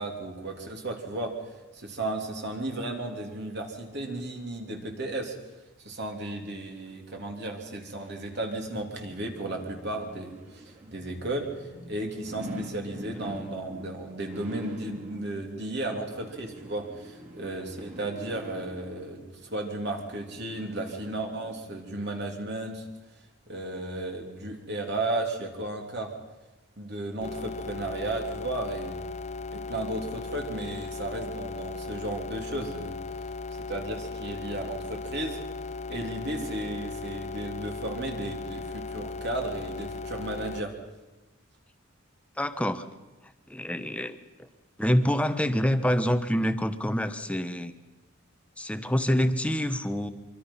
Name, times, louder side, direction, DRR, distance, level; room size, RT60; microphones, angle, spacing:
voice 1, 0.0-1.4 1.7-5.3 5.8-22.9 23.5-26.2 26.8-29.1 29.5-33.0 33.5-35.4 35.9-40.8, right 2 dB, 55° right, 2 dB, 3.3 m, -34 dB
sound 1, 7.8-21.7 22.2-22.3, equal, 35° right, 3.9 m, -45 dB
sound 2, 27.2-40.6, left 4 dB, 30° left, 0.7 m, -37 dB
voice 2, 42.4-42.9 43.5-44.5 44.8-47.7 48.6-50.1, equal, 5° left, 9 dB, 1.0 m, -26 dB
25.0 x 24.5 x 5.7 m, 1.1 s
head